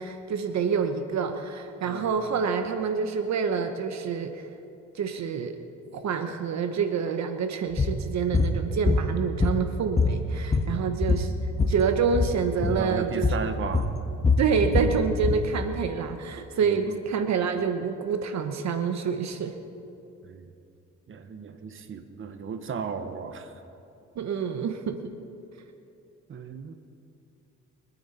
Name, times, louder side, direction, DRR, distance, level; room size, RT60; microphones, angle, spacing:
voice 1, 0.0-4.4 4.9-5.6 5.9-11.3 11.7-13.5 14.4-19.5 24.2-25.0, right 6 dB, 65° right, 7 dB, 1.1 m, -27 dB
sound 1, 7.8-8.0 8.3-8.5 8.9-9.7 10.0-11.8 12.1-12.3 12.6-12.8 13.2-13.5 13.7-15.4, left 4 dB, 20° left, 1.3 m, -23 dB
voice 2, 10.6-10.9 12.7-13.9 16.6-17.0 20.2-20.5 21.1-23.6 26.3-26.7, right 5 dB, 45° right, 8 dB, 1.1 m, -35 dB
24.0 x 9.4 x 4.3 m, 2.7 s
cardioid pair, 90°, 30 cm